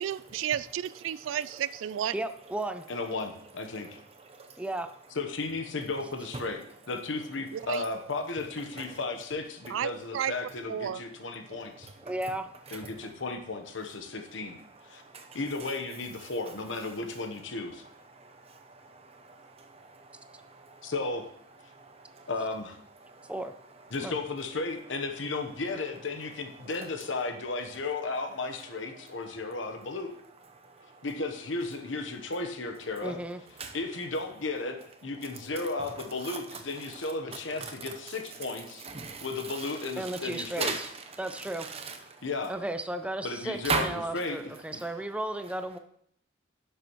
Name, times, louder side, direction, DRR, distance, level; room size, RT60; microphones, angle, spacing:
voice 1, 0.0-2.1 7.5-7.8 9.7-10.3 10.7-11.0, right 10 dB, 85° right, 0.3 m, -32 dB
voice 2, 2.1-2.8 4.6-4.9 12.0-12.5 23.3-23.5 24.0-24.2 33.0-33.4 40.0-40.9 41.2-41.7 42.5-45.8, right 1 dB, 5° right, 0.4 m, -34 dB
voice 3, 2.9-4.0 5.2-11.9 12.7-14.6 14.8-15.0 15.3-17.7 20.8-21.3 22.3-22.8 23.9-30.1 31.0-33.2 33.7-38.8 39.2-40.8 42.2-42.5 43.2-44.8, left 3 dB, 75° left, 1.0 m, -34 dB
voice 4, 18.9-20.9 21.7-22.3 23.0-23.3 33.6-33.8 36.3-36.4 37.6-37.7 38.8-39.3 40.6-40.9 41.6-42.0 43.6-43.9, right 4 dB, 35° right, 0.8 m, -36 dB
10.5 x 6.8 x 3.0 m
head